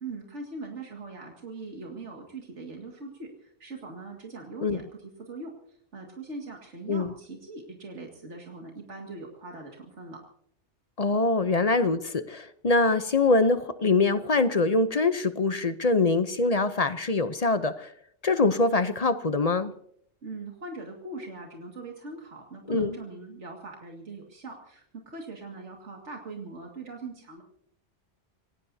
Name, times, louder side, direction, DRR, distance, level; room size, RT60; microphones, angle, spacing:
voice 1, 0.0-10.2 20.2-27.4, right 3 dB, 85° right, 0 dB, 2.4 m, -41 dB
voice 2, 11.0-17.9 18.2-19.7 22.7-23.0, left 3 dB, 40° left, 11 dB, 0.7 m, -24 dB
27.0 x 18.0 x 2.7 m, 0.68 s
omnidirectional pair, 1.2 m